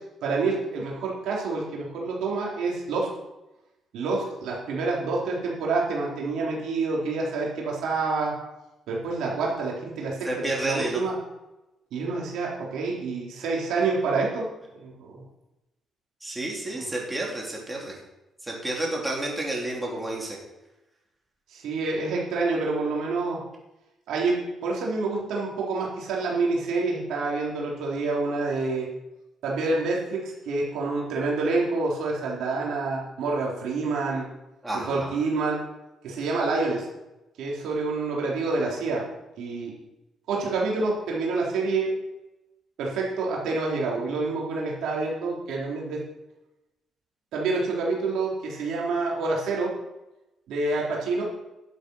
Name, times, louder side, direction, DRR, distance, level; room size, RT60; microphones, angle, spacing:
voice 1, 0.2-3.1 3.9-8.3 8.9-11.1 11.9-14.5 14.8-15.1 16.7-16.9 21.5-23.4 24.1-24.4 24.6-28.9 29.4-34.3 34.8-35.6 36.0-36.9 37.4-39.0 39.4-39.7 40.3-41.9 42.8-46.0 47.3-49.7 50.5-51.2, right 3 dB, 85° right, -3 dB, 4.1 m, -27 dB
voice 2, 10.2-11.0 16.2-18.0 18.4-20.4 34.6-35.1, right 2 dB, 15° right, -2 dB, 3.9 m, -30 dB
12.0 x 7.9 x 6.6 m, 0.98 s
cardioid pair, 90°, 0 cm